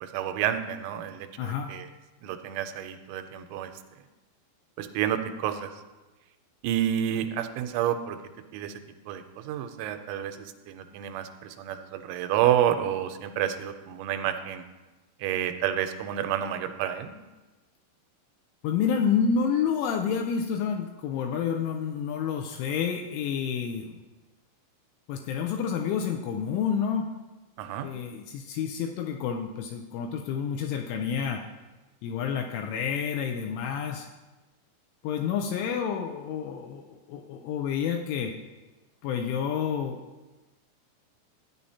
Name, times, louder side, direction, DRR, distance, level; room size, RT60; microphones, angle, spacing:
voice 1, 0.0-1.9 2.2-3.7 4.8-5.7 6.6-8.2 8.5-8.8 9.1-14.6 15.2-17.1 27.6-27.9, right 10 dB, 90° right, 8 dB, 3.2 m, -29 dB
voice 2, 1.4-1.8 18.6-24.0 25.1-27.1 27.8-31.4 32.0-34.1 35.0-38.4 39.0-40.0, left 7 dB, 85° left, 3 dB, 2.7 m, -29 dB
13.0 x 9.0 x 2.8 m, 1.1 s
omnidirectional pair, 5.9 m